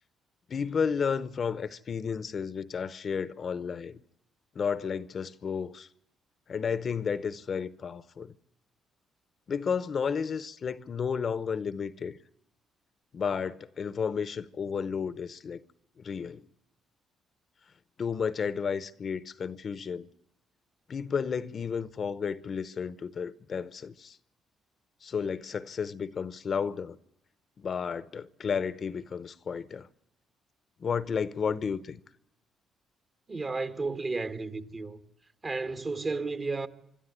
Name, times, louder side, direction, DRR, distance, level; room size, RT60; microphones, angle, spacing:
voice 1, 0.5-4.0 4.5-5.9 6.5-8.3 9.5-12.2 13.1-15.6 16.0-16.5 18.0-20.1 20.9-24.2 25.0-27.0 27.6-29.9 30.8-32.0, left 6 dB, 50° left, 0.8 m, -32 dB
voice 2, 33.3-35.0 35.4-36.7, right 3 dB, 35° right, 1.5 m, -33 dB
25.5 x 12.5 x 9.6 m
cardioid pair, 90°, 0 cm